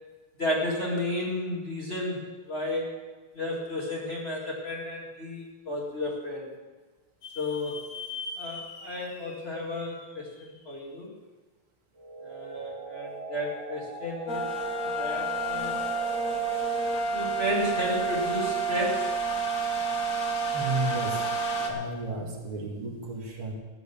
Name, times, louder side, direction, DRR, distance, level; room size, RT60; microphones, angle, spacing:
voice 1, 0.4-2.9 3.3-6.5 7.4-7.8 8.4-11.1 12.2-14.5 15.0-15.8 17.1-19.1, left 1 dB, 30° left, -2 dB, 2.4 m, -32 dB
sound 1, 7.2-10.7, left 4 dB, 80° left, 2.3 m, -42 dB
sound 2, 12.0-16.9, right 4 dB, 40° right, 1.3 m, -41 dB
sound 3, 14.3-21.7, right 3 dB, 45° left, 1.4 m, -29 dB
voice 2, 20.5-23.5, right 2 dB, 80° right, -2 dB, 3.1 m, -33 dB
13.5 x 8.1 x 6.9 m, 1.3 s
omnidirectional pair, 2.4 m